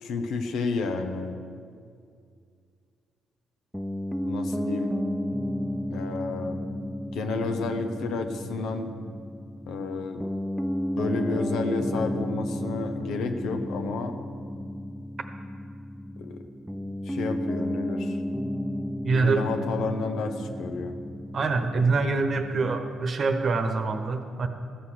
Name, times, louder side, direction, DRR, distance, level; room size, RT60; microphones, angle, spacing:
voice 1, 0.0-1.4 4.2-5.0 5.9-6.6 7.1-8.9 9.7-10.3 11.0-14.1 16.2-16.4 17.0-18.2 19.1-21.0, left 3 dB, 80° left, 6 dB, 1.0 m, -31 dB
Piano, 3.7-23.1, equal, ahead, 0.3 m, -33 dB
voice 2, 19.0-19.5 21.3-24.5, right 4 dB, 50° right, 7 dB, 1.0 m, -25 dB
15.0 x 5.8 x 6.4 m, 2.3 s
cardioid pair, 90°, 0 cm